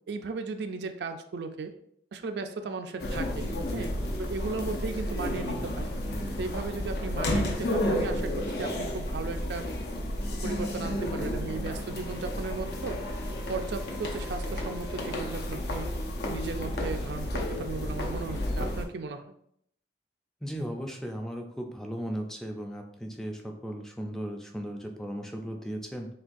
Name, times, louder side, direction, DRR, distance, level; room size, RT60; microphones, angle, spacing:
voice 1, 0.1-1.7 2.1-5.9 6.4-9.7 10.4-13.0 13.5-15.9 16.3-19.2, right 4 dB, 70° right, 7 dB, 0.4 m, -36 dB
sound 1, 3.0-18.9, left 1 dB, 60° left, 0.6 m, -32 dB
voice 2, 20.4-26.1, equal, 5° left, 2 dB, 0.4 m, -36 dB
6.0 x 2.3 x 2.6 m, 0.70 s
head